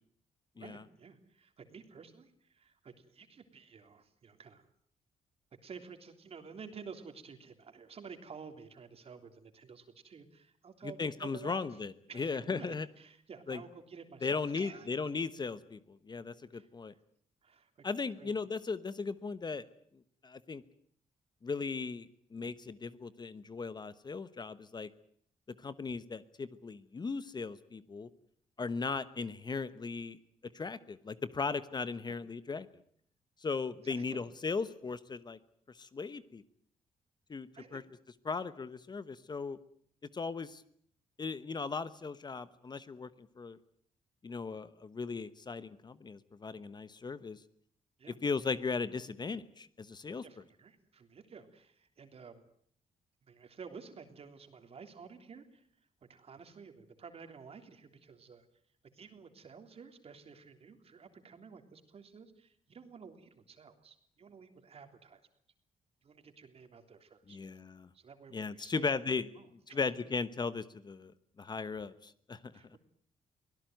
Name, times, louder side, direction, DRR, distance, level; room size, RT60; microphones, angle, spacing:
voice 1, 0.6-4.6 5.6-11.6 12.1-14.9 16.5-16.7 17.4-17.8 18.2-18.4 32.1-32.2 33.8-34.2 37.5-37.8 48.0-48.2 50.2-52.4 53.3-55.7 56.1-58.4 58.9-65.2 66.0-67.4 67.9-69.0 69.4-69.8 72.5-72.8, right 5 dB, 50° right, 7 dB, 3.4 m, -52 dB
voice 2, 10.8-12.9 13.5-13.6 14.2-16.9 17.8-19.6 20.2-20.6 21.4-24.9 25.6-28.1 28.6-30.2 30.4-32.7 33.4-35.4 35.7-36.4 37.3-37.8 38.2-39.6 40.1-40.6 41.2-43.6 44.2-47.4 48.1-50.2 67.3-67.9 68.3-69.2 69.7-71.1 71.4-72.5, left 4 dB, 30° left, 14 dB, 1.1 m, -37 dB
24.0 x 17.0 x 9.2 m, 0.63 s
cardioid pair, 100°, 13 cm